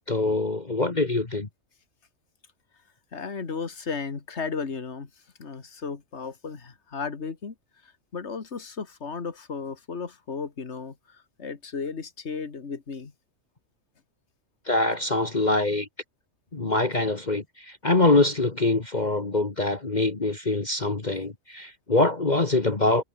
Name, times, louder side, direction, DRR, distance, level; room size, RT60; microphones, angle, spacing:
voice 1, 0.1-1.5 14.7-15.9 16.5-23.0, left 2 dB, 35° left, 1.9 m, -24 dB
voice 2, 3.1-5.1 5.4-7.5 7.8-13.1, left 5 dB, 55° left, 2.3 m, -35 dB
omnidirectional pair, 1.3 m